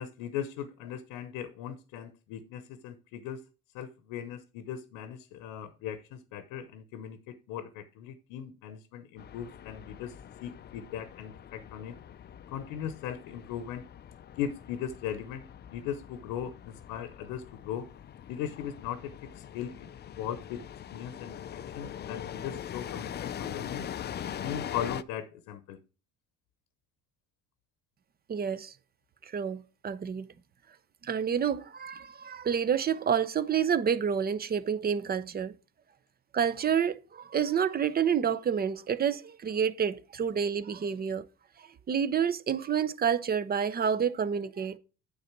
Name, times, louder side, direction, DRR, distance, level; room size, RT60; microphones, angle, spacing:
voice 1, 0.0-3.4 3.7-10.1 10.4-11.9 12.5-13.8 14.4-17.9 18.3-19.9 20.2-20.7 20.9-23.9 24.4-25.8, left 9 dB, 85° left, 0.8 m, -38 dB
sound 1, 9.2-25.0, left 9 dB, 35° left, 0.4 m, -42 dB
voice 2, 28.3-28.7 29.2-30.3 31.0-35.5 36.3-41.2 41.6-44.8, right 7 dB, 30° right, 0.6 m, -29 dB
8.9 x 4.0 x 5.9 m
cardioid pair, 95°, 32 cm